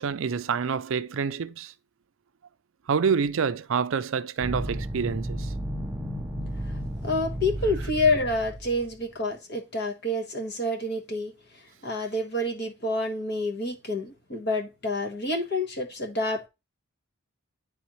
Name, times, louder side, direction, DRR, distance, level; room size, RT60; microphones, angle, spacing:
voice 1, 0.0-1.7 2.9-5.5, right 6 dB, 65° right, 0.4 m, -27 dB
sound 1, 4.4-8.9, equal, 5° right, 0.6 m, -33 dB
voice 2, 7.0-16.5, left 2 dB, 50° left, 1.3 m, -28 dB
10.0 x 3.4 x 3.0 m
head